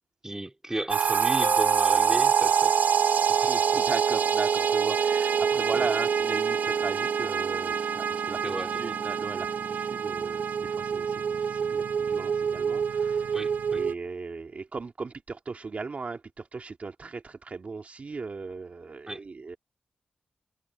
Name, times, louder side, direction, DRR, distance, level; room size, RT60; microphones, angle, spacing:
voice 1, 0.2-2.8 3.3-3.8 5.7-5.9 8.4-8.9 13.3-13.8 19.1-19.2, right 1 dB, 20° right, 3.1 m, -35 dB
sound 1, 0.9-13.9, right 7 dB, 80° right, 0.8 m, -26 dB
sound 2, 1.4-2.9, left 6 dB, 85° left, 4.8 m, -39 dB
voice 2, 3.4-13.4 13.7-19.6, right 4 dB, 55° right, 2.1 m, -37 dB
cardioid pair, 70°, 3 cm